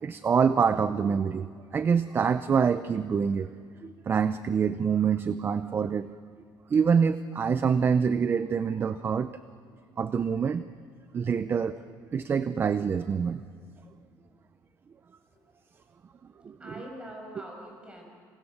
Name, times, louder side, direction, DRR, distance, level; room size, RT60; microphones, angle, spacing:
voice 1, 0.0-3.5 3.8-6.1 6.7-9.3 10.0-10.6 11.1-11.8 12.1-13.4 16.4-16.7, right 6 dB, 30° right, 13 dB, 0.6 m, -26 dB
voice 2, 15.8-18.0, equal, 15° right, 1 dB, 7.1 m, -45 dB
28.0 x 27.0 x 6.6 m, 2.2 s
cardioid pair, 135°, 8 cm